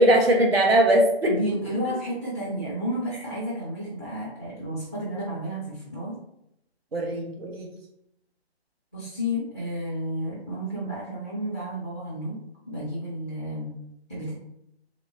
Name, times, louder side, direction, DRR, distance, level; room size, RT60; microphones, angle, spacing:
voice 1, 0.0-1.3 6.9-7.7, right 1 dB, 65° right, 1 dB, 1.2 m, -20 dB
voice 2, 1.3-6.2 8.9-13.8 14.1-14.3, equal, 20° right, -7 dB, 0.6 m, -31 dB
3.3 x 2.9 x 3.8 m, 0.79 s
hypercardioid pair, 175°, 33 cm